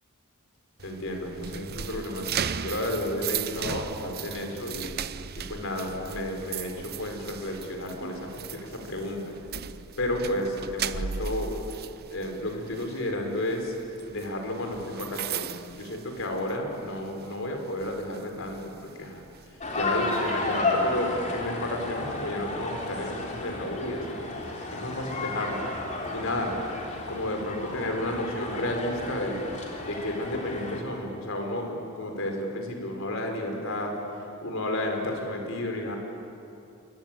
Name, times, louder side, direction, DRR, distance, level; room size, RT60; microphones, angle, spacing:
voice 1, 0.8-4.9 5.4-9.3 10.0-11.6 12.1-13.7 14.1-19.2 19.7-24.2 24.7-25.7 26.1-26.6 27.1-29.4 29.8-33.9 34.4-36.0, left 1 dB, 65° left, 3 dB, 4.7 m, -32 dB
sound 1, 0.8-16.7 17.0-17.3 17.8-19.5, right 7 dB, 45° right, 0.7 m, -37 dB
sound 2, 19.6-30.8, left 2 dB, 35° left, 3.6 m, -32 dB
26.5 x 23.0 x 9.2 m, 2.7 s
head